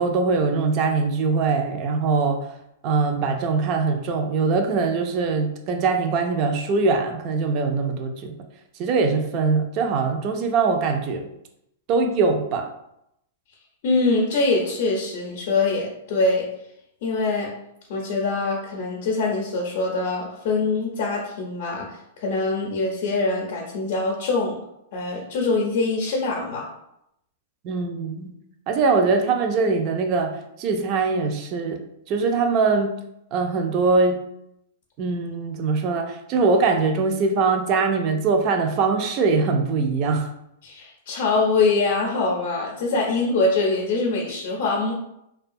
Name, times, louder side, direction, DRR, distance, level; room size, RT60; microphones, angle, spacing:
voice 1, 0.0-2.5 2.8-8.4 8.8-11.3 11.9-12.7 27.6-28.3 28.7-31.8 32.1-32.9 33.3-34.2 35.0-40.3, right 4 dB, 35° right, 5 dB, 0.4 m, -22 dB
voice 2, 13.8-16.5 17.0-17.5 17.9-24.6 24.9-26.7 40.6-44.9, left 3 dB, 55° left, -1 dB, 0.5 m, -23 dB
2.4 x 2.2 x 2.6 m, 0.80 s
hypercardioid pair, 145°, 0 cm